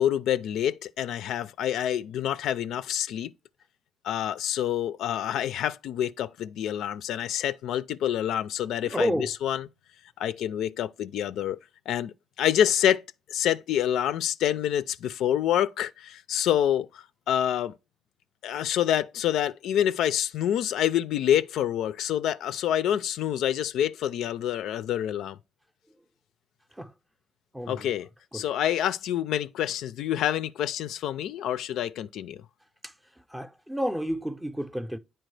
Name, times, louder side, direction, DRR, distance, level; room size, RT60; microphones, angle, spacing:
voice 1, 0.0-3.3 4.0-9.6 10.2-11.6 11.9-13.0 13.3-17.7 18.4-25.4 27.7-28.1 28.3-32.4, left 10 dB, 75° left, 0.3 m, -27 dB
voice 2, 8.8-9.3 26.7-26.9 27.5-27.9 28.3-28.5 32.8-35.0, equal, 5° right, 0.5 m, -31 dB
9.1 x 4.3 x 3.2 m
cardioid pair, 125°, 0 cm